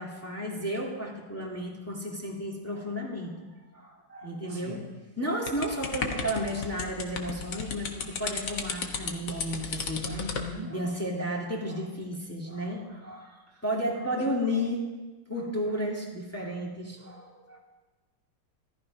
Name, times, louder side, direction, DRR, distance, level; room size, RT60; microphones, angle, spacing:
voice 1, 0.0-3.3 3.7-4.8 5.2-10.1 10.7-14.9 15.3-17.6, equal, 5° left, -2 dB, 2.0 m, -33 dB
voice 2, 4.5-4.9 10.1-10.7 13.5-13.6 14.2-14.3, left 1 dB, 80° right, -2 dB, 3.4 m, -39 dB
sound 1, 5.5-10.5, left 5 dB, 65° left, 1.8 m, -34 dB
14.0 x 13.0 x 5.3 m, 1.2 s
omnidirectional pair, 2.2 m